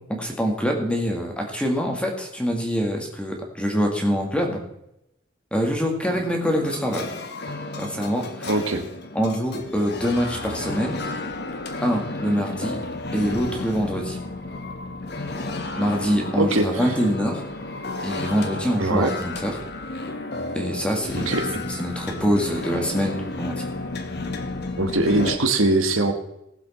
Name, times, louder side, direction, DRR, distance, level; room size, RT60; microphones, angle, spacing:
voice 1, 0.1-4.6 5.5-7.1 7.8-8.5 9.1-11.0 11.8-12.8 13.1-14.2 15.8-17.4 18.0-19.5 20.5-21.3 21.8-23.7, equal, 5° left, 1 dB, 2.1 m, -25 dB
sound 1, 6.0-25.4, left 2 dB, 50° left, 1.2 m, -32 dB
voice 2, 8.5-8.8 16.4-16.9 18.8-19.1 21.2-21.5 24.8-26.1, right 2 dB, 80° right, 6 dB, 1.5 m, -21 dB
19.0 x 7.5 x 4.3 m, 0.82 s
head